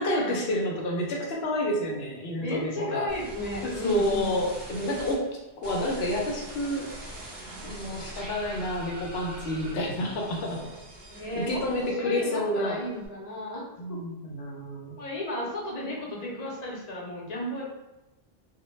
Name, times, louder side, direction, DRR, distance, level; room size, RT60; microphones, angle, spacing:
voice 1, 0.0-3.1 3.6-5.2 5.6-6.9 7.6-10.6 11.4-12.8 13.8-14.9, left 1 dB, 80° left, -1 dB, 0.8 m, -29 dB
voice 2, 2.4-4.3 11.1-13.6 13.9-14.0 15.0-17.6, left 1 dB, 50° left, -4 dB, 0.6 m, -34 dB
sound 1, 3.1-5.1 5.6-12.2 12.5-13.1, right 1 dB, 30° right, 0.5 m, -42 dB
2.2 x 2.1 x 3.0 m, 1.0 s
omnidirectional pair, 1.0 m